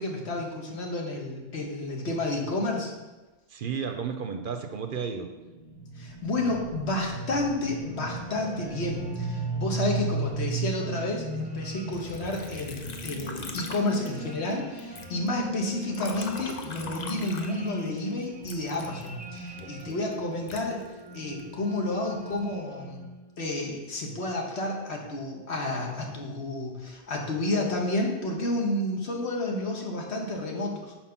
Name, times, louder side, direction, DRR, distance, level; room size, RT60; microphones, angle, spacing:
voice 1, 0.0-2.9 6.0-23.1 23.4-30.9, left 2 dB, 70° left, 0 dB, 1.4 m, -31 dB
voice 2, 3.5-5.3 19.6-20.0, right 6 dB, 55° right, 6 dB, 0.7 m, -33 dB
sound 1, 5.3-23.3, right 3 dB, 10° right, 0.7 m, -37 dB
Liquid, 11.9-14.5 14.8-18.0 18.4-21.5 22.0-22.6, left 4 dB, 45° left, 0.6 m, -42 dB
5.9 x 4.5 x 5.7 m, 1.1 s
omnidirectional pair, 1.1 m